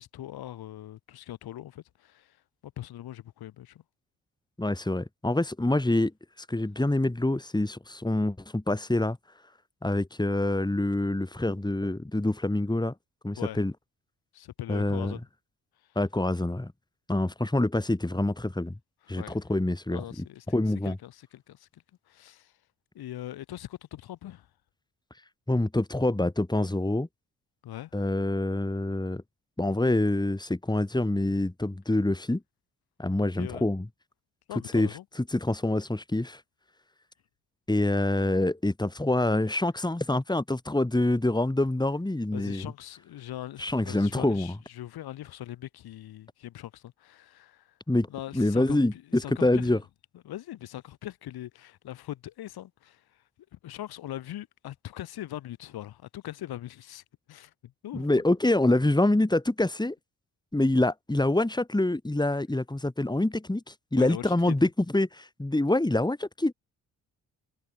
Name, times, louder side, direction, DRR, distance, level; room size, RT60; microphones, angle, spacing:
voice 1, 0.0-2.4 2.6-3.8 13.4-13.6 14.3-15.2 19.1-19.4 19.9-20.6 20.8-21.8 22.1-22.5 23.0-24.5 27.6-27.9 33.4-33.7 34.5-35.0 42.3-47.7 48.1-49.8 50.3-53.0 53.5-57.0 57.3-58.1 64.0-64.6, left 13 dB, 80° left, 5.2 m, -41 dB
voice 2, 4.6-6.1 6.5-9.2 9.8-12.9 13.2-13.7 14.7-15.2 15.9-16.7 17.1-18.8 19.1-21.0 25.5-27.1 27.9-29.2 29.6-32.4 33.0-33.9 34.7-36.4 37.7-42.6 43.6-44.6 47.9-48.1 48.3-49.8 57.9-59.9 60.5-66.5, left 1 dB, 10° left, 3.1 m, -26 dB
supercardioid pair, 55°, 37 cm